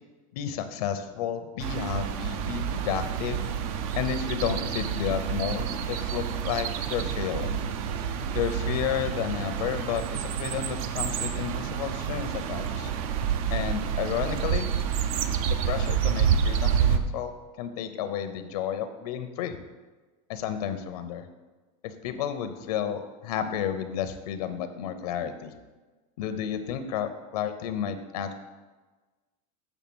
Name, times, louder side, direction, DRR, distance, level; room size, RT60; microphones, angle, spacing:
voice 1, 0.3-3.4 4.0-7.6 8.3-12.9 13.5-14.7 15.5-19.6 20.3-21.2 21.8-25.5 26.2-28.3, left 9 dB, 85° left, 9 dB, 0.7 m, -32 dB
sound 1, 1.6-17.0, right 8 dB, 65° right, 0.6 m, -28 dB
7.3 x 3.3 x 6.1 m, 1.3 s
supercardioid pair, 145°, 19 cm